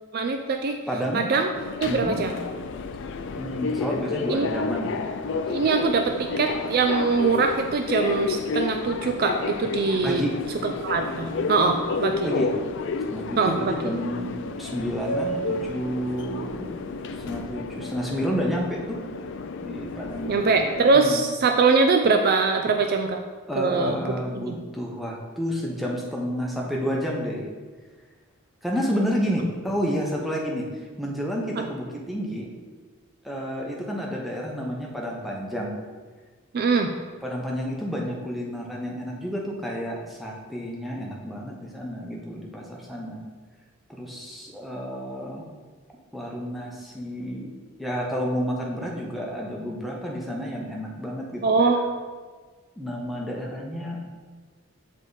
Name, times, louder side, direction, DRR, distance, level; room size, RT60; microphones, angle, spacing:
voice 1, 0.1-0.8 1.1-1.5 1.8-2.3 4.3-4.5 5.5-10.2 10.6-12.3 13.4-13.7 20.3-23.2 23.6-24.0 24.3-24.6 31.6-31.7 36.5-36.9 51.4-51.8, right 4 dB, 45° right, 5 dB, 0.3 m, -22 dB
voice 2, 0.9-1.2 1.8-2.2 3.4-5.6 10.0-10.4 12.2-12.5 13.1-16.9 17.2-19.0 19.6-20.4 20.9-21.2 23.5-27.5 28.6-30.7 31.0-32.5 33.2-35.8 37.2-43.2 43.9-45.5 46.1-47.5 47.8-51.8 52.8-54.0, equal, ahead, -2 dB, 0.8 m, -30 dB
Subway metro underground, 1.5-20.9, left 4 dB, 55° left, 0.3 m, -31 dB
7.3 x 3.5 x 4.0 m, 1.4 s
head